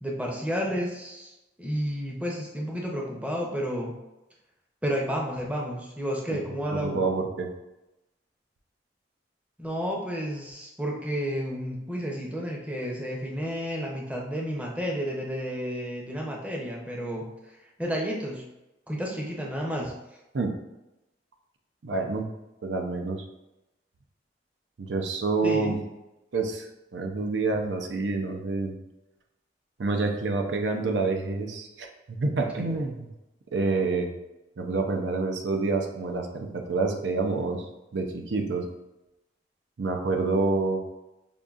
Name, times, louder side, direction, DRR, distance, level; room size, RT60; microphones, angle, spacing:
voice 1, 0.0-4.0 4.8-7.0 9.6-17.3 17.8-18.4 18.9-19.9 25.4-25.8, equal, 10° right, -1 dB, 0.5 m, -31 dB
voice 2, 6.7-7.5 20.3-20.5 21.8-22.3 22.6-23.2 24.8-25.7 26.3-28.7 29.8-33.1 33.5-34.1 34.6-37.7 37.9-38.6 39.8-40.8, right 3 dB, 85° right, 3 dB, 0.5 m, -27 dB
5.2 x 2.6 x 2.4 m, 0.96 s
head